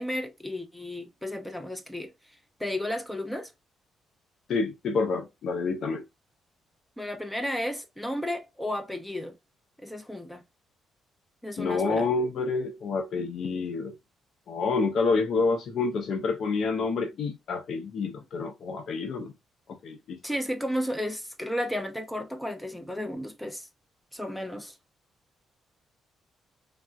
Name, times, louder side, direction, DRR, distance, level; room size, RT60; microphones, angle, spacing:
voice 1, 0.0-2.1 2.6-3.5 7.0-9.3 9.8-10.4 11.4-12.1 20.2-23.7 24.1-24.7, left 1 dB, 5° left, 0.5 m, -33 dB
voice 2, 4.5-6.0 11.6-14.0 14.5-19.3 19.8-20.2, left 4 dB, 65° left, 0.4 m, -28 dB
3.3 x 2.5 x 2.3 m
cardioid pair, 90°, 0 cm